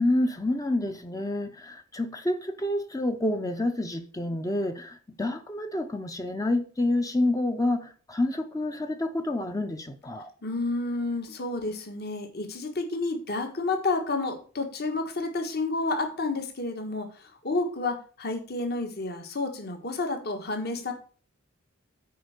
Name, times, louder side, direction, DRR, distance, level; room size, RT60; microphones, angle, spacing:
voice 1, 0.0-10.3, left 1 dB, 15° left, 0.6 m, -28 dB
voice 2, 10.4-20.9, left 3 dB, 50° left, 1.6 m, -30 dB
9.4 x 4.5 x 6.5 m
head